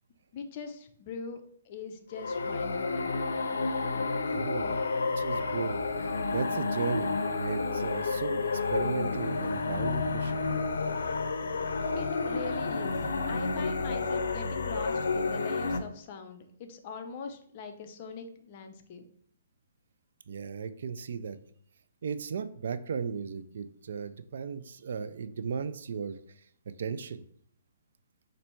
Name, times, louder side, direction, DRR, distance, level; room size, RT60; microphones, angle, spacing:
voice 1, 0.3-3.1 12.0-19.1, left 5 dB, 35° left, 6 dB, 0.5 m, -42 dB
sound 1, 2.1-15.8, left 3 dB, 85° left, 0.5 m, -30 dB
voice 2, 4.3-5.8 6.2-10.4 20.3-21.4 22.0-26.2 26.8-27.2, right 6 dB, 65° right, 12 dB, 0.3 m, -36 dB
4.3 x 2.6 x 4.3 m, 0.63 s
hypercardioid pair, 160°, 0 cm